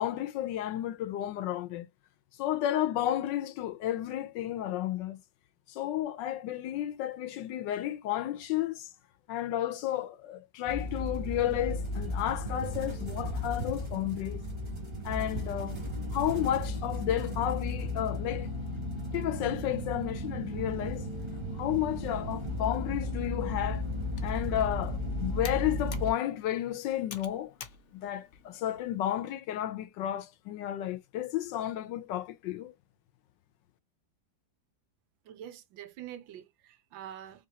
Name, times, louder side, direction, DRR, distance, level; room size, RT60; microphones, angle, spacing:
voice 1, 0.0-1.8 2.4-5.2 5.7-8.9 9.3-14.4 15.0-15.8 16.1-18.5 19.1-21.1 21.5-23.9 24.2-27.5 27.9-32.7, left 12 dB, 75° left, 1.2 m, -32 dB
sound 1, 10.6-26.1, left 1 dB, 15° right, 1.2 m, -35 dB
Computer keyboard, 24.0-29.1, left 7 dB, 55° left, 0.8 m, -50 dB
voice 2, 35.3-37.5, right 10 dB, 80° right, 1.5 m, -45 dB
3.9 x 3.3 x 2.7 m
omnidirectional pair, 2.1 m